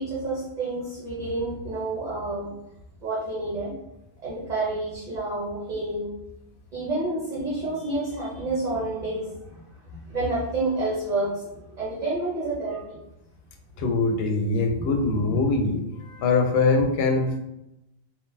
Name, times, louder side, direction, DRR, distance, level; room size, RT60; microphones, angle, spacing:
voice 1, 0.0-2.5 3.0-3.7 4.2-6.1 6.7-13.0 14.8-15.4, right 2 dB, 45° right, -7 dB, 0.8 m, -29 dB
voice 2, 13.8-17.4, left 3 dB, 75° left, 4 dB, 0.8 m, -23 dB
3.7 x 2.2 x 2.6 m, 0.88 s
omnidirectional pair, 1.1 m